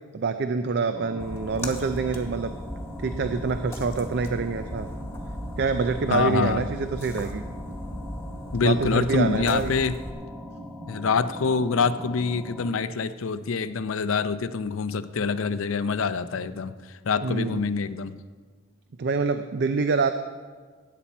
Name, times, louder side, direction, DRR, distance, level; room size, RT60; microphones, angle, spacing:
voice 1, 0.1-2.5 3.0-4.9 5.6-7.4 8.6-9.7 17.2-17.6 19.0-20.1, right 4 dB, 55° right, 9 dB, 0.5 m, -26 dB
sound 1, 0.9-12.7, equal, 5° right, 1.3 m, -41 dB
Splash splatter, 1.2-10.1, equal, 15° left, 1.3 m, -37 dB
voice 2, 6.1-6.7 8.5-10.0 10.9-16.8 17.0-18.2, left 5 dB, 90° left, 13 dB, 0.6 m, -25 dB
16.5 x 8.6 x 4.3 m, 1.5 s
head